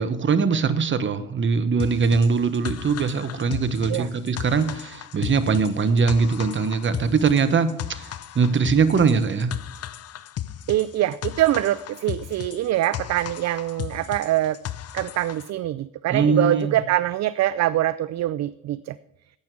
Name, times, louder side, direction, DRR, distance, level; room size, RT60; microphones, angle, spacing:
voice 1, 0.0-8.1 8.3-9.6 16.1-16.8, right 5 dB, 40° right, 12 dB, 1.1 m, -21 dB
sound 1, 1.8-15.5, left 11 dB, 55° left, 0.6 m, -35 dB
voice 2, 10.7-14.6 14.9-19.0, right 14 dB, 60° right, 17 dB, 0.4 m, -24 dB
12.0 x 8.7 x 4.7 m, 0.83 s
cardioid pair, 90°, 30 cm